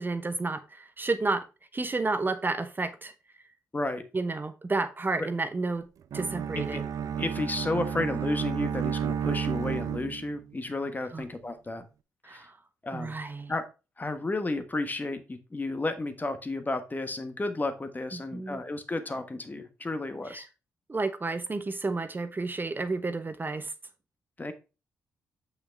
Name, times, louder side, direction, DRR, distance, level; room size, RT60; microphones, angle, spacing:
voice 1, 0.0-1.4 1.7-3.1 4.1-5.9 6.1-6.8 11.1-11.3 12.2-12.6 12.9-13.5 18.1-18.6 20.3-20.5 20.9-23.7, right 3 dB, 30° right, 0.9 m, -31 dB
voice 2, 3.7-4.0 5.2-5.3 6.6-6.8 7.2-11.8 12.3-12.4 12.8-13.2 13.5-13.6 14.0-20.4 24.4-24.5, left 2 dB, 25° left, 1.3 m, -32 dB
Bowed string instrument, 6.1-10.5, right 8 dB, 60° right, 0.6 m, -31 dB
6.1 x 5.8 x 3.4 m
hypercardioid pair, 45°, 7 cm